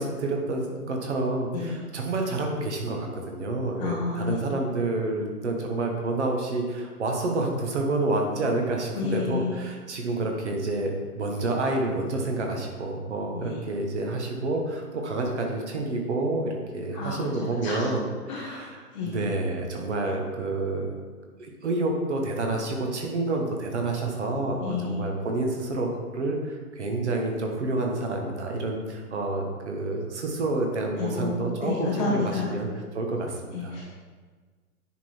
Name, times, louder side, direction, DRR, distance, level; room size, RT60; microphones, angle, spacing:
voice 1, 0.0-18.8 19.0-20.9 21.4-32.7 32.9-33.8, right 2 dB, 45° right, 1 dB, 1.4 m, -29 dB
voice 2, 3.8-4.4 8.9-9.6 13.3-13.6 16.9-17.2 17.6-17.8 18.3-19.2 24.6-25.0 31.0-31.3 31.6-32.5 33.5-33.8, left 4 dB, 20° left, -6 dB, 0.8 m, -30 dB
10.0 x 3.9 x 4.5 m, 1.4 s
figure-of-eight pair, 130°, 46 cm